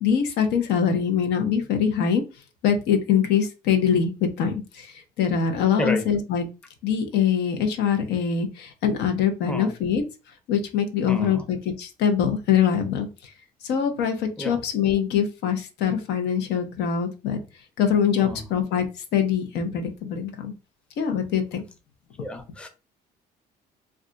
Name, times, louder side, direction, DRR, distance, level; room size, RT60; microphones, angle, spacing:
voice 1, 0.0-2.2 2.6-6.4 6.8-10.0 10.5-13.1 13.6-17.4 17.8-18.9 19.1-20.5 21.0-21.6, left 7 dB, 80° left, 0.7 m, -23 dB
voice 2, 11.1-11.4 14.4-14.6 18.2-18.4 22.2-22.7, left 1 dB, 5° left, 0.5 m, -30 dB
2.4 x 2.2 x 3.8 m
cardioid pair, 110°, 17 cm